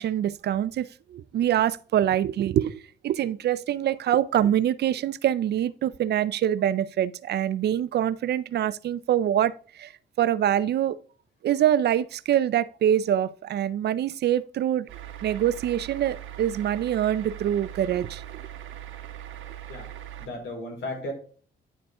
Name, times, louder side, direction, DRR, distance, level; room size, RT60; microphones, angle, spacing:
voice 1, 0.0-2.7 3.0-9.9 10.2-11.0 11.4-14.9 15.2-18.2, right 11 dB, 55° right, 0.4 m, -25 dB
sound 1, 14.9-20.3, right 11 dB, 80° right, 1.0 m, -40 dB
voice 2, 20.2-21.1, left 1 dB, 70° left, 3.8 m, -34 dB
10.0 x 4.6 x 3.7 m
cardioid pair, 90°, 20 cm